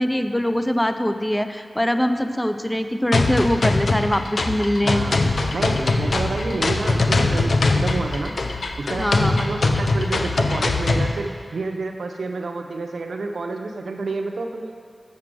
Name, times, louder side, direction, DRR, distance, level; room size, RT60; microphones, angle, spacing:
voice 1, 0.0-5.0 9.0-9.4, equal, 10° left, 8 dB, 0.6 m, -22 dB
sound 1, 3.1-11.1, left 3 dB, 75° left, 0.6 m, -22 dB
voice 2, 4.8-5.2 5.5-8.4 8.8-14.7, right 3 dB, 85° right, 4 dB, 0.7 m, -29 dB
sound 2, 5.7-9.7, left 1 dB, 45° left, 2.1 m, -36 dB
7.5 x 7.1 x 6.2 m, 2.1 s
cardioid pair, 50°, 0 cm